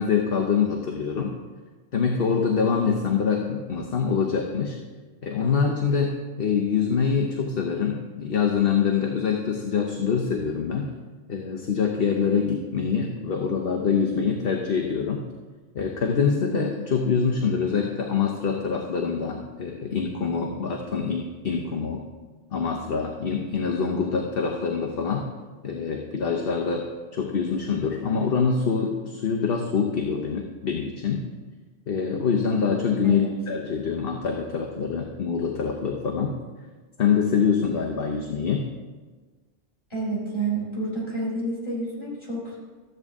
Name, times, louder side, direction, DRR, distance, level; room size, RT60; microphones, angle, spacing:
voice 1, 0.0-1.3 1.9-4.8 5.2-10.9 11.3-15.2 15.7-22.0 22.5-25.3 25.6-31.3 31.9-36.3 37.0-38.7, left 6 dB, 50° left, 2 dB, 1.0 m, -25 dB
voice 2, 39.9-42.6, right 2 dB, 20° left, -6 dB, 3.7 m, -29 dB
13.5 x 7.9 x 3.6 m, 1.4 s
omnidirectional pair, 1.3 m